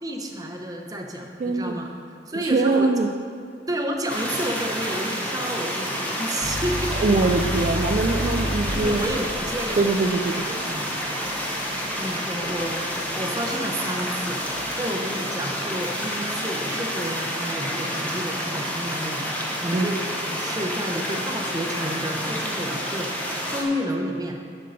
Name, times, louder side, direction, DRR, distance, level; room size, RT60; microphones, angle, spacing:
voice 1, 0.0-1.9 2.3-2.9 3.7-6.9 8.7-10.9 11.9-24.4, equal, 20° right, 2 dB, 0.7 m, -31 dB
voice 2, 1.4-1.7 2.3-3.1 6.9-9.2 9.8-10.5 19.7-19.9, right 3 dB, 45° right, 2 dB, 0.3 m, -23 dB
sound 1, 4.1-23.6, equal, 10° left, 0.8 m, -29 dB
sound 2, 6.4-13.7 14.1-14.8, left 1 dB, 50° left, 1.1 m, -31 dB
6.7 x 5.3 x 6.3 m, 2.3 s
head